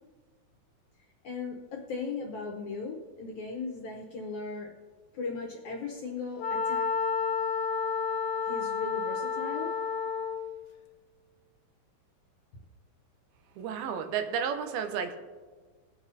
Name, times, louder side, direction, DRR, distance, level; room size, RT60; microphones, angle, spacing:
voice 1, 1.2-4.7 5.1-6.9 8.4-9.8, left 4 dB, 70° left, 0 dB, 2.0 m, -37 dB
Wind instrument woodwind instrument, 6.4-10.5, left 5 dB, 90° left, 2.8 m, -30 dB
voice 2, 13.6-15.2, right 7 dB, 90° right, 7 dB, 2.7 m, -32 dB
20.5 x 7.1 x 2.7 m, 1.4 s
omnidirectional pair, 4.3 m